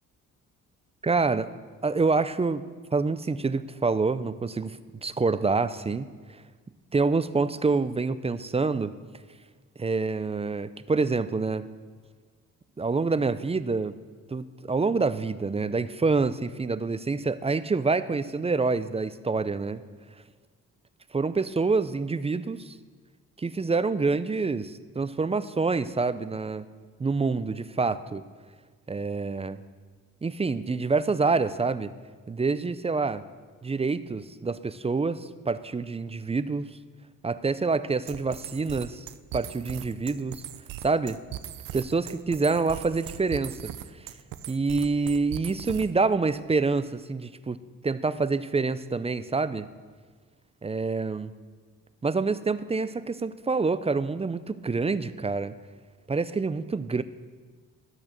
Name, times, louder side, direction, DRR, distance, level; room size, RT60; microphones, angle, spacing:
voice 1, 1.0-1.5 1.8-2.6 2.9-6.1 6.9-8.9 9.8-11.7 12.8-13.9 14.3-19.8 21.1-22.8 23.4-26.7 27.0-28.2 28.9-29.6 30.2-31.9 32.3-33.2 33.6-36.8 37.2-39.1 39.3-40.4 40.8-41.2 41.7-43.7 44.5-47.6 47.8-49.7 50.6-51.3 52.0-55.5 56.1-57.0, right 4 dB, 20° right, 14 dB, 0.4 m, -27 dB
sound 1, 38.1-46.1, right 11 dB, 75° right, 0.6 m, -39 dB
12.5 x 6.2 x 6.5 m, 1.5 s
cardioid pair, 80°, 34 cm